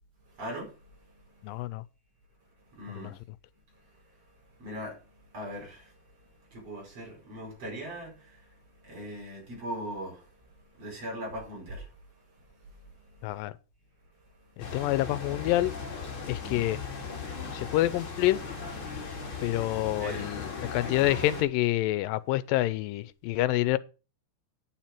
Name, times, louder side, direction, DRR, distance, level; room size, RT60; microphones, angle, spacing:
voice 1, 0.3-1.6 2.6-3.2 3.7-13.4 14.2-14.8 20.0-20.3, right 1 dB, 45° right, 6.1 m, -42 dB
voice 2, 1.4-1.8 3.0-3.1 13.2-13.6 14.6-15.7 16.3-16.8 17.5-18.4 19.4-23.8, left 16 dB, 85° left, 2.4 m, -27 dB
sound 1, 14.6-21.4, left 5 dB, 40° left, 3.1 m, -37 dB
9.7 x 7.4 x 5.9 m
omnidirectional pair, 3.9 m